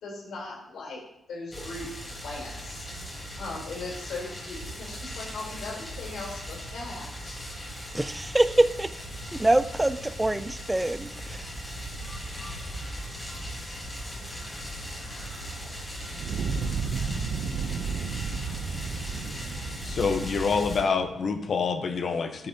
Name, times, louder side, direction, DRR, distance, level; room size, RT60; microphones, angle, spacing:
voice 1, 0.0-1.0 1.3-1.9 2.1-2.9 3.4-7.4, left 3 dB, 75° left, -3 dB, 3.4 m, -39 dB
sound 1, 1.5-20.8, equal, 20° left, 2.9 m, -38 dB
voice 2, 7.9-8.9 9.4-11.4, right 1 dB, 10° right, 14 dB, 0.3 m, -24 dB
Fire, 16.1-21.3, right 5 dB, 70° right, 0.5 m, -33 dB
voice 3, 19.8-22.5, left 5 dB, 50° left, 7 dB, 0.8 m, -27 dB
9.4 x 7.8 x 2.8 m, 0.83 s
cardioid pair, 135°, 0 cm